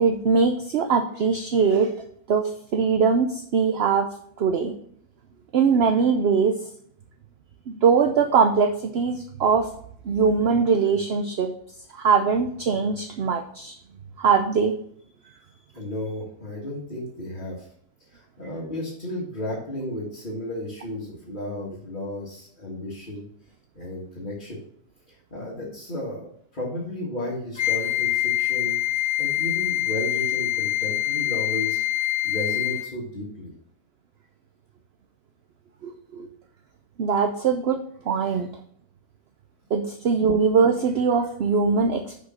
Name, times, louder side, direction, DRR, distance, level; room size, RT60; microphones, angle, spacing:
voice 1, 0.0-1.9 2.3-2.4 2.7-4.1 4.4-4.7 5.5-6.5 7.7-9.7 10.1-11.5 11.9-13.7 14.2-14.7 35.8-36.3 37.0-37.8 38.1-38.5 39.7-42.3, right 5 dB, 55° right, 5 dB, 0.7 m, -21 dB
voice 2, 15.8-17.7 18.1-23.3 23.7-24.6 25.1-33.5 38.2-38.4, left 1 dB, 30° left, -6 dB, 1.9 m, -34 dB
Wind instrument woodwind instrument, 27.6-32.9, left 15 dB, 55° left, 0.5 m, -25 dB
6.5 x 5.1 x 6.2 m, 0.63 s
omnidirectional pair, 1.6 m